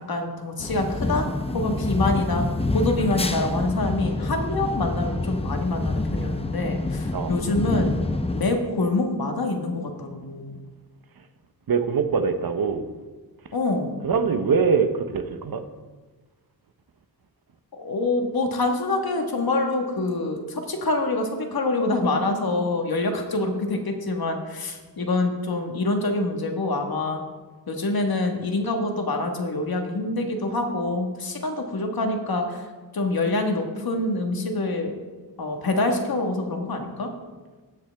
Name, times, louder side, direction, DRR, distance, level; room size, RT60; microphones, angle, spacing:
voice 1, 0.1-1.2 1.5-2.4 2.7-7.9 8.3-10.6 13.5-13.9 17.8-27.2 27.7-32.6 32.9-35.0 35.4-37.1, left 2 dB, 65° left, 3 dB, 1.5 m, -26 dB
sound 1, 0.6-8.4, left 2 dB, 15° left, 0.6 m, -27 dB
voice 2, 11.7-12.9 14.0-15.6, right 5 dB, 60° right, 9 dB, 0.9 m, -23 dB
16.5 x 6.6 x 3.4 m, 1.3 s
wide cardioid pair, 80°, 40 cm